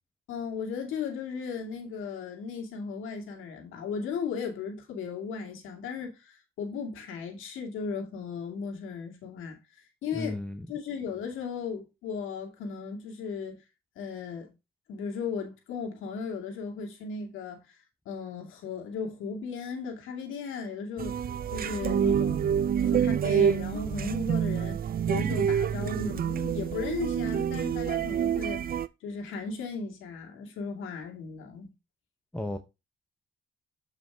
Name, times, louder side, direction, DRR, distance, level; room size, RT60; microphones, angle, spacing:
voice 1, 0.3-9.6 10.0-10.4 10.7-13.6 14.0-14.5 14.9-17.6 18.1-21.2 21.5-24.8 25.1-28.7 29.0-31.7, left 5 dB, 85° left, 2.4 m, -36 dB
voice 2, 10.1-10.7 32.3-32.6, left 1 dB, 5° left, 0.9 m, -34 dB
sound 1, 21.0-28.9, right 8 dB, 50° right, 0.5 m, -27 dB
7.6 x 5.5 x 3.6 m
cardioid pair, 90°, 20 cm